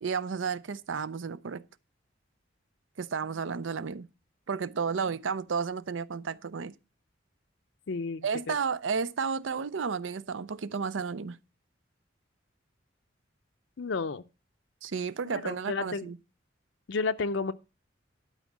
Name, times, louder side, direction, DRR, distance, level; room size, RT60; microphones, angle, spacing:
voice 1, 0.0-1.6 3.0-4.1 4.5-6.7 8.2-11.4 14.8-16.2, right 5 dB, 85° right, 0.5 m, -32 dB
voice 2, 7.9-8.6 13.8-14.2 15.2-16.1 16.9-17.5, left 4 dB, 70° left, 0.5 m, -32 dB
12.0 x 4.2 x 7.2 m
head